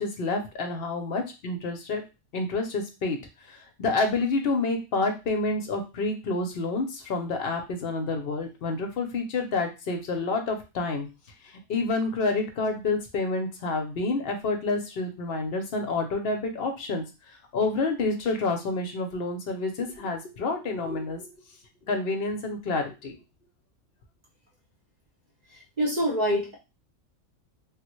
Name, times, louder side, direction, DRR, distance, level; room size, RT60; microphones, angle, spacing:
voice 1, 0.0-2.0 2.3-3.2 3.5-11.1 11.4-17.0 17.5-21.4 21.9-23.2, left 3 dB, 55° left, 4 dB, 0.7 m, -28 dB
voice 2, 25.8-26.5, equal, 40° right, 0 dB, 0.7 m, -25 dB
3.5 x 2.1 x 3.0 m, 0.28 s
omnidirectional pair, 1.4 m